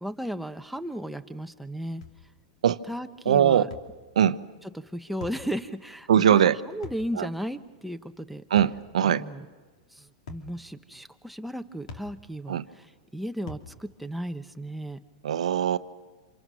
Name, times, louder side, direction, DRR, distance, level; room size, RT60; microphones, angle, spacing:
voice 1, 0.0-2.0 2.9-3.7 4.7-8.4 9.0-9.5 9.9-12.6 13.1-15.0, equal, ahead, 8 dB, 1.0 m, -35 dB
sound 1, 2.0-2.2 3.7-3.9 5.2-5.5 6.8-7.1 8.6-8.8 10.3-10.5 11.9-12.1 13.5-13.7, left 4 dB, 85° left, 3.0 m, -42 dB
voice 2, 3.2-3.7 4.1-4.4 6.1-6.6 7.2-7.3 8.5-9.2 12.5-12.7 15.2-15.8, right 9 dB, 90° right, 13 dB, 0.9 m, -21 dB
28.0 x 27.0 x 6.3 m, 1.3 s
hypercardioid pair, 130°, 4 cm